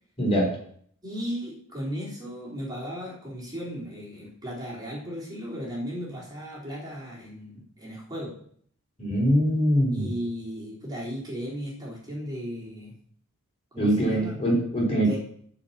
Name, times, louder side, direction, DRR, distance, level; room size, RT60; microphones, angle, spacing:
voice 1, 0.2-0.5 9.0-10.1 13.8-15.2, equal, 30° left, -2 dB, 4.3 m, -23 dB
voice 2, 1.0-8.3 9.9-13.0 13.7-14.4 15.0-15.2, equal, 20° right, -5 dB, 3.8 m, -36 dB
13.5 x 5.1 x 7.4 m, 0.62 s
head